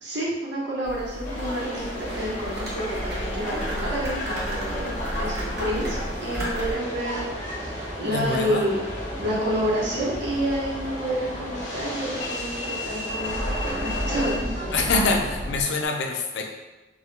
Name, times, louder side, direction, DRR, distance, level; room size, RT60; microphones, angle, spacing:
voice 1, 0.0-8.8 9.2-14.7, equal, 85° right, -6 dB, 0.8 m, -29 dB
sound 1, 0.8-6.7, equal, 60° right, 0.7 m, -33 dB
Subway metro underground, 1.2-15.9, left 1 dB, 40° left, 0.7 m, -34 dB
sound 2, 1.9-15.6, equal, 30° right, 0.3 m, -37 dB
voice 2, 8.1-8.7 14.7-16.4, left 3 dB, 75° left, 2 dB, 0.4 m, -25 dB
2.1 x 2.0 x 3.0 m, 1.1 s
head